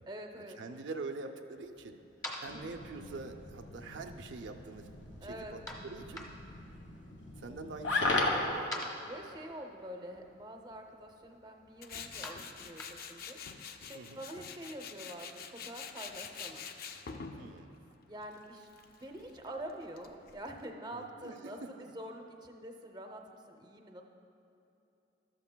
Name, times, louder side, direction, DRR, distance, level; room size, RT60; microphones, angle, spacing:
voice 1, 0.1-0.6 2.4-2.8 5.2-5.6 9.0-13.4 13.8-16.7 18.1-24.0, right 1 dB, 20° right, 3 dB, 0.6 m, -46 dB
voice 2, 0.6-2.0 2.4-4.9 5.2-6.3 7.4-8.7 13.9-14.2 17.4-17.7 20.9-21.9, right 3 dB, 70° right, 5 dB, 0.5 m, -44 dB
sound 1, 1.6-13.5, left 1 dB, 20° left, 1.1 m, -50 dB
sound 2, 2.5-8.5, left 2 dB, 75° left, 1.2 m, -36 dB
Tools, 11.8-20.6, left 6 dB, 50° left, 0.5 m, -47 dB
13.0 x 13.0 x 2.2 m, 2.9 s
head